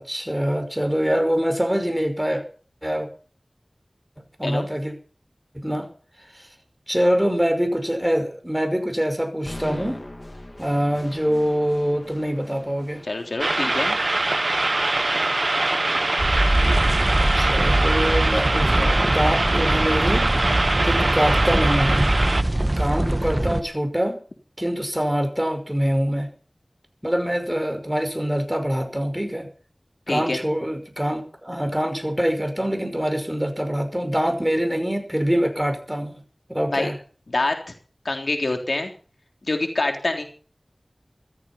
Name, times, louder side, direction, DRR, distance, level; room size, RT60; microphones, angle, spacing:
voice 1, 0.0-2.4 2.8-3.1 4.2-4.9 5.5-5.9 6.3-6.5 6.9-10.0 10.6-13.0 17.2-20.3 20.8-22.1 22.8-24.2 24.6-26.3 27.0-29.5 30.1-36.2 36.5-37.0, equal, 10° right, 7 dB, 5.5 m, -24 dB
sound 1, 9.4-17.5, left 1 dB, 40° left, 3.1 m, -42 dB
voice 2, 13.1-14.0 16.3-16.4 30.1-30.4 36.7-36.9 37.3-37.6 38.0-38.9 39.4-40.2, left 2 dB, 80° left, 4 dB, 3.4 m, -25 dB
sound 2, 13.4-22.4, right 2 dB, 65° right, 0.9 m, -23 dB
sound 3, 16.2-23.6, right 1 dB, 35° right, 1.6 m, -22 dB
14.5 x 14.0 x 5.7 m, 0.42 s
wide cardioid pair, 40°, 0 cm